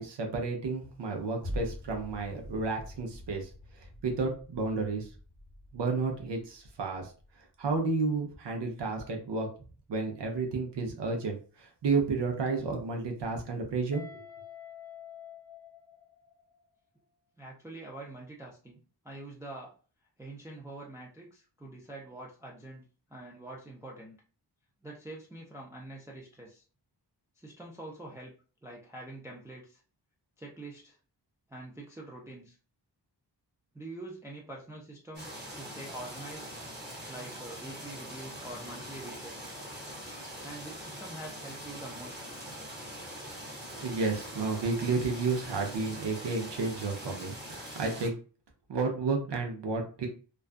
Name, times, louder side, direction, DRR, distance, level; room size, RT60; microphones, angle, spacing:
voice 1, 0.0-5.1 5.7-7.1 7.6-9.5 9.9-14.2 43.7-48.2 48.7-50.1, right 4 dB, 80° right, 2 dB, 0.7 m, -32 dB
sound 1, 1.4-10.0 10.4-10.5, left 1 dB, 40° right, 1.2 m, -45 dB
Guitar, 13.9-16.7, left 9 dB, 70° left, 0.6 m, -49 dB
voice 2, 17.4-18.8 19.0-19.7 20.2-22.8 23.1-24.2 24.8-26.6 27.4-28.3 28.6-29.8 30.4-31.0 31.5-32.6 33.7-36.5 37.1-39.6 40.4-42.3, right 2 dB, 5° right, -3 dB, 0.4 m, -45 dB
sound 2, 35.1-48.1, equal, 25° right, 0.9 m, -43 dB
2.4 x 2.3 x 2.4 m, 0.37 s
wide cardioid pair, 155°, 42 cm